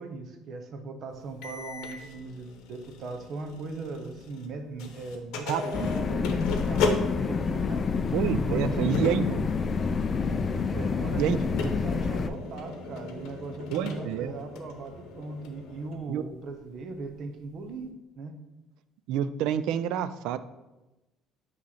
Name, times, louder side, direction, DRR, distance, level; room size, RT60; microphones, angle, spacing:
voice 1, 0.0-7.9 8.5-9.5 10.7-18.4, right 3 dB, 50° right, 7 dB, 0.8 m, -38 dB
sound 1, 1.4-4.5 4.8-15.9, left 3 dB, 75° left, 0.8 m, -37 dB
voice 2, 5.5-5.9 8.1-9.3 11.2-11.4 13.7-14.4 16.1-16.2 19.1-20.4, right 10 dB, 75° right, 13 dB, 0.3 m, -28 dB
sound 2, 5.7-12.3, left 5 dB, 30° left, 0.4 m, -28 dB
6.1 x 3.1 x 5.7 m, 1.0 s
cardioid pair, 130°, 0 cm